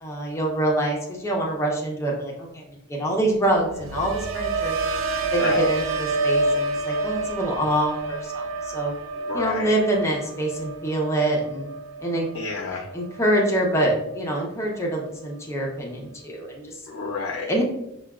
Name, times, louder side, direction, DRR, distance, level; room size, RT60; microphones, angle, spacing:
voice 1, 0.0-2.6 2.9-4.8 5.2-8.9 9.3-11.7 12.0-12.3 12.9-16.8 17.5-17.6, right 1 dB, 15° left, -1 dB, 0.5 m, -25 dB
sound 1, 3.5-13.5 13.9-14.3, right 2 dB, 65° right, 0.4 m, -28 dB
voice 2, 5.4-5.7 9.3-9.8 12.3-12.9 16.9-17.5, left 4 dB, 90° left, -1 dB, 0.5 m, -30 dB
5.6 x 2.2 x 2.3 m, 0.85 s
head